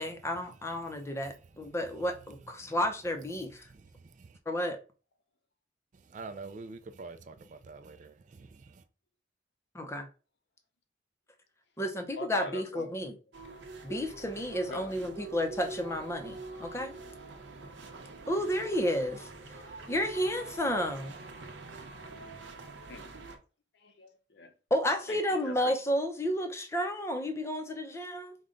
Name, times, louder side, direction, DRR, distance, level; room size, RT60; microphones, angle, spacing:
voice 1, 0.0-3.7 4.5-4.8 9.7-10.1 11.8-13.1 13.8-17.0 18.3-19.3 19.9-21.2 24.7-28.4, equal, 15° left, 0.6 m, -31 dB
voice 2, 0.6-1.3 1.6-1.7 2.6-2.8 3.6-4.4 5.9-8.8, right 3 dB, 40° right, 0.3 m, -47 dB
voice 3, 12.2-12.9 14.6-14.9 15.2-15.3 22.9-23.3 23.7-24.5 25.1-25.7, left 3 dB, 60° left, 0.6 m, -43 dB
sound 1, 13.3-23.4, right 3 dB, 70° right, 0.8 m, -46 dB
5.0 x 2.2 x 3.7 m
head